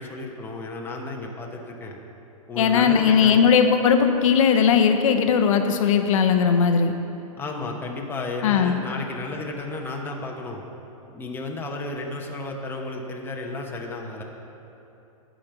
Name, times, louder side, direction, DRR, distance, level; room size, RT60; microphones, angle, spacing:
voice 1, 0.0-2.0 2.5-3.5 7.4-10.6 11.1-14.2, left 2 dB, 10° left, 0 dB, 0.9 m, -33 dB
voice 2, 2.6-6.9 8.4-8.8, left 7 dB, 60° left, 7 dB, 0.7 m, -18 dB
10.0 x 5.2 x 7.8 m, 2.9 s
hypercardioid pair, 130°, 19 cm